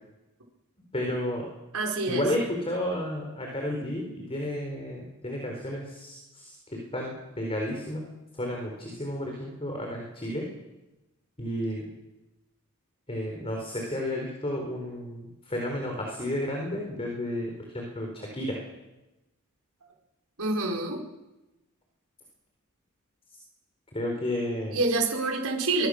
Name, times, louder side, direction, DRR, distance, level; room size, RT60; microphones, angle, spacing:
voice 1, 0.9-1.5 2.1-10.5 11.4-11.9 13.1-18.6 23.9-24.8, left 1 dB, 25° left, 1 dB, 4.4 m, -32 dB
voice 2, 1.7-2.2 20.4-21.0 24.7-25.9, right 3 dB, 75° right, 0 dB, 5.1 m, -27 dB
23.0 x 22.5 x 6.6 m, 1.0 s
head